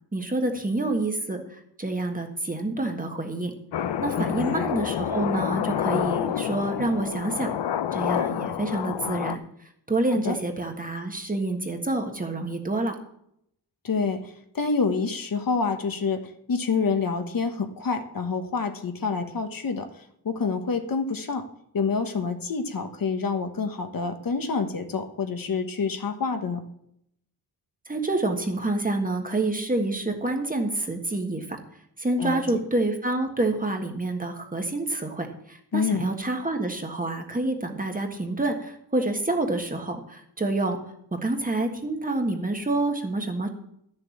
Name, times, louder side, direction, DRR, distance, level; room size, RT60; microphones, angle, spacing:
voice 1, 0.1-3.5 4.0-7.5 7.9-9.4 9.9-13.0 27.9-31.6 32.0-40.8 41.1-43.5, right 2 dB, 20° right, 4 dB, 1.5 m, -27 dB
sound 1, 3.7-9.4, left 9 dB, 85° left, 0.7 m, -28 dB
voice 2, 4.2-4.6 10.2-10.3 13.8-16.2 16.5-21.4 21.7-26.6 32.2-32.4 35.7-36.0, left 4 dB, 55° left, 6 dB, 1.3 m, -27 dB
13.0 x 6.9 x 7.2 m, 0.73 s
wide cardioid pair, 140°, 40 cm